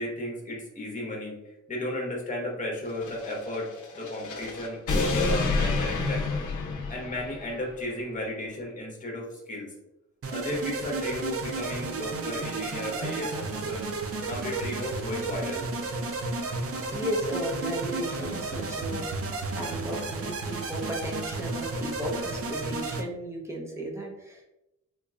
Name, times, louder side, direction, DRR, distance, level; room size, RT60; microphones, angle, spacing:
voice 1, 0.0-6.2 6.9-9.7 10.3-13.9 14.2-15.7, left 1 dB, 25° left, -2 dB, 1.0 m, -34 dB
sound 1, 2.9-7.7, left 3 dB, 80° left, 0.6 m, -29 dB
sound 2, 10.2-23.0, right 3 dB, 50° right, 0.5 m, -32 dB
voice 2, 16.9-24.4, equal, 10° right, -2 dB, 0.7 m, -35 dB
3.8 x 2.9 x 2.4 m, 0.92 s
wide cardioid pair, 155°, 30 cm